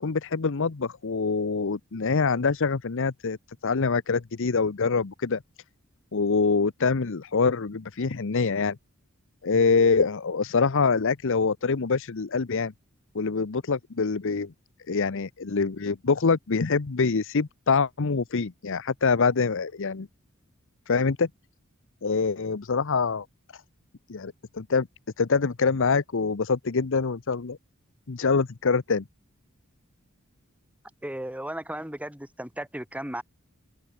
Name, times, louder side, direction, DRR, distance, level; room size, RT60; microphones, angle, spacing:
voice 1, 0.0-3.4 3.6-5.4 6.1-8.8 9.4-12.7 13.1-14.5 14.9-20.1 20.9-21.3 22.0-23.3 23.5-23.6 24.1-24.9 25.2-27.6 28.1-29.0, left 4 dB, 60° left, 0.7 m, -25 dB
voice 2, 31.0-33.2, right 1 dB, 5° right, 2.5 m, -35 dB
head